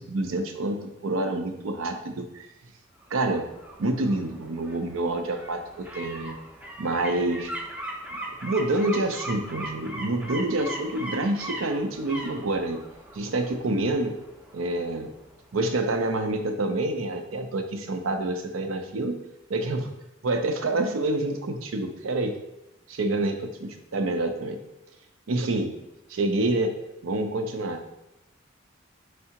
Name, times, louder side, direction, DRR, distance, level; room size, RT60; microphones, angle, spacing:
voice 1, 0.0-2.5 3.1-3.5 3.8-6.3 6.8-7.5 8.1-12.8 13.1-14.2 14.5-15.1 15.5-19.2 19.5-19.9 20.2-22.4 22.9-24.6 25.3-25.7 26.1-26.7 27.0-27.8, right 2 dB, 90° right, 6 dB, 0.5 m, -27 dB
sound 1, 3.0-15.8 16.2-16.3, right 1 dB, 5° right, 0.4 m, -40 dB
4.6 x 3.3 x 2.8 m, 0.94 s
head